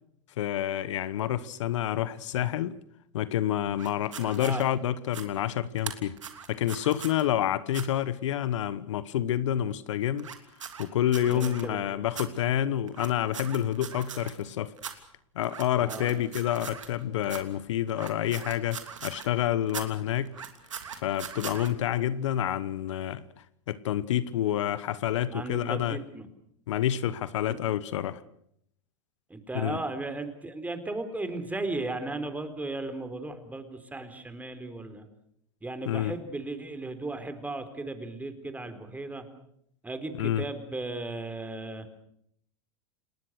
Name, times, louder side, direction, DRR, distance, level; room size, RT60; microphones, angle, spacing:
voice 1, 0.4-2.7 3.1-6.2 6.5-10.3 10.8-14.7 15.3-20.3 21.0-23.2 23.7-26.0 26.7-28.2 29.5-29.8 35.9-36.1 40.2-40.4, left 11 dB, 75° left, 1.2 m, -28 dB
sound 1, 3.8-4.6 5.0-5.3 5.8-7.2 7.7-7.8 10.2-11.6 12.1-12.3 12.9-14.5 14.8-14.9 15.4-17.0 17.2-17.4 17.9-19.3 19.7-19.9 20.2-21.7, right 7 dB, 90° right, 3.0 m, -40 dB
voice 2, 11.2-12.1 15.8-16.2 25.3-26.3 27.5-27.6 29.3-35.1 35.6-39.2 39.8-41.9, right 2 dB, 10° right, 3.9 m, -36 dB
29.5 x 19.5 x 6.5 m
hypercardioid pair, 100°, 16 cm